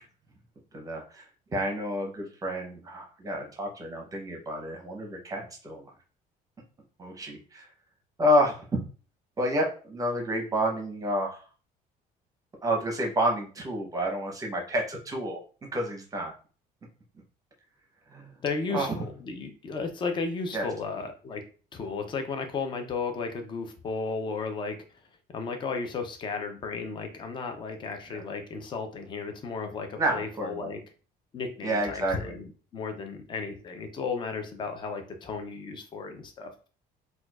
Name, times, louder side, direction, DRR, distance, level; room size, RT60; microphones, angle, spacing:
voice 1, 0.7-1.3 1.5-5.8 7.0-7.6 8.2-8.8 9.4-11.4 12.6-15.4 15.7-16.3 18.1-18.3 18.7-19.0 20.5-20.7 28.1-28.2 30.0-30.8 31.6-32.4, equal, 20° right, 1 dB, 0.7 m, -29 dB
voice 2, 18.4-21.4 21.7-24.8 25.3-30.8 31.3-36.5, left 4 dB, 30° left, 5 dB, 0.5 m, -34 dB
4.2 x 2.3 x 2.3 m, 0.39 s
cardioid pair, 150°, 16 cm